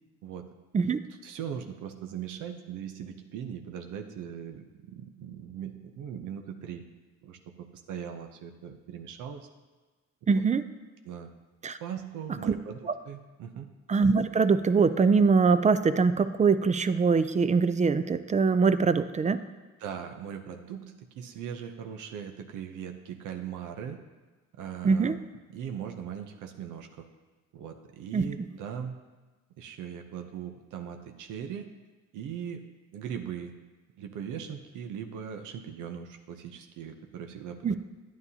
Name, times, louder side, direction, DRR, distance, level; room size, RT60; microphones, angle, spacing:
voice 1, 1.2-6.8 7.2-9.5 10.2-10.4 11.0-11.3 11.8-12.8 13.0-13.7 19.8-20.9 21.1-24.0 24.5-25.2 25.5-27.1 27.5-29.0 29.6-31.7 32.1-32.6 32.9-33.5 34.0-37.8, right 8 dB, 85° right, 5 dB, 0.7 m, -39 dB
voice 2, 10.3-10.6 11.6-11.8 12.5-12.6 13.9-19.4 24.8-25.2 28.1-28.3 37.6-37.7, right 5 dB, 25° right, 12 dB, 0.4 m, -23 dB
9.4 x 9.3 x 2.8 m, 1.3 s
cardioid pair, 90°, 30 cm